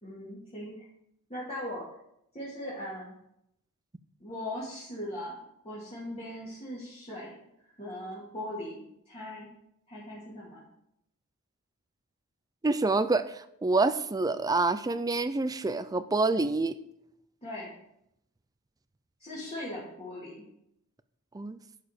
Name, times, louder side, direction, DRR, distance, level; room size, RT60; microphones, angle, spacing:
voice 1, 0.0-0.9 1.3-1.9 2.3-3.2 4.2-5.4 5.6-7.3 7.8-9.5 9.9-10.6 17.4-17.7 19.2-20.5, left 1 dB, 25° left, -9 dB, 2.3 m, -39 dB
voice 2, 12.6-16.8 21.3-21.6, right 3 dB, 15° right, 13 dB, 0.4 m, -27 dB
11.0 x 4.8 x 5.1 m, 0.78 s
head